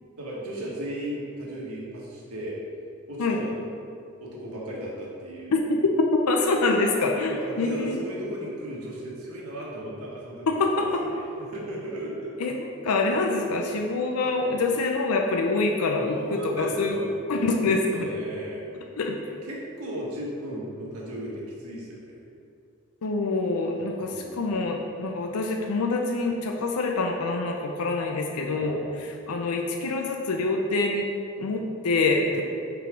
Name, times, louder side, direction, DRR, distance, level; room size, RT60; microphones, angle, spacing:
voice 1, 0.2-2.6 3.1-3.5 4.2-5.6 7.0-11.2 11.5-12.3 14.2-14.4 16.0-18.7 19.4-22.2 24.0-24.6 28.5-29.0 32.3-32.4, right 1 dB, 90° right, -4 dB, 1.5 m, -36 dB
voice 2, 5.5-8.0 10.5-11.0 12.4-16.2 16.6-17.0 17.3-18.1 19.0-19.4 23.0-31.1 31.4-32.4, left 3 dB, 85° left, 2 dB, 0.5 m, -25 dB
5.5 x 4.0 x 5.1 m, 2.5 s
head